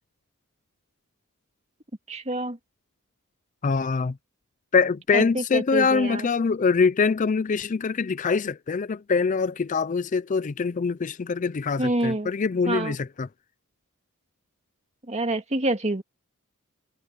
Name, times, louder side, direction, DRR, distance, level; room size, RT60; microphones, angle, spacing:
voice 1, 2.1-2.6 5.1-6.3 11.8-12.3 12.7-13.0 15.1-16.0, right 2 dB, 30° right, 2.2 m, -27 dB
voice 2, 3.6-4.2 4.7-13.3, left 5 dB, 35° left, 0.4 m, -24 dB
head